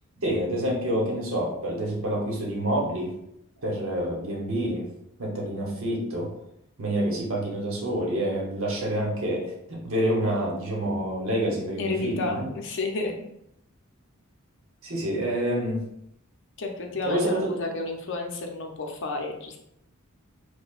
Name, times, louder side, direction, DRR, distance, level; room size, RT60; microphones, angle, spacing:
voice 1, 0.2-3.1 3.6-4.8 5.2-6.3 6.8-12.5 13.0-13.1 14.8-15.8 17.0-17.5, right 1 dB, 70° right, -2 dB, 1.0 m, -27 dB
voice 2, 11.8-13.2 16.6-19.6, left 3 dB, 60° left, 2 dB, 0.6 m, -31 dB
4.7 x 2.2 x 2.4 m, 0.78 s
head